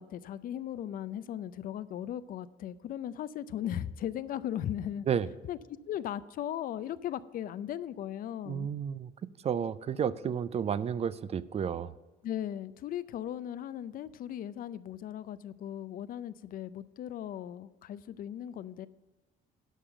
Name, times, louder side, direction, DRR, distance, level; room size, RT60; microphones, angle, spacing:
voice 1, 0.0-5.1 5.5-5.6 5.9-8.7 12.2-18.9, left 10 dB, 55° left, 16 dB, 0.5 m, -37 dB
voice 2, 8.5-9.1 9.4-11.9, right 8 dB, 40° right, 17 dB, 0.4 m, -31 dB
11.5 x 5.6 x 6.9 m, 1.2 s
cardioid pair, 110°, 17 cm